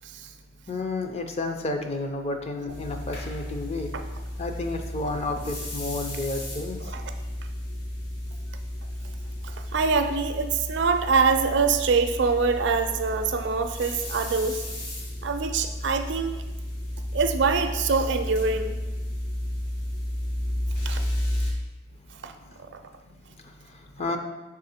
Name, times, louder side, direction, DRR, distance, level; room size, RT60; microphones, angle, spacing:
voice 1, 0.7-3.9 4.4-6.9 22.4-22.6 23.4-24.2, left 2 dB, 35° left, 4 dB, 0.5 m, -31 dB
sound 1, 2.7-21.5, left 1 dB, 55° left, 2.0 m, -33 dB
voice 2, 9.4-14.6 15.2-16.4 17.1-18.7 20.9-21.0 22.2-22.3, right 4 dB, 65° right, 7 dB, 0.5 m, -24 dB
6.1 x 3.7 x 4.3 m, 1.2 s
head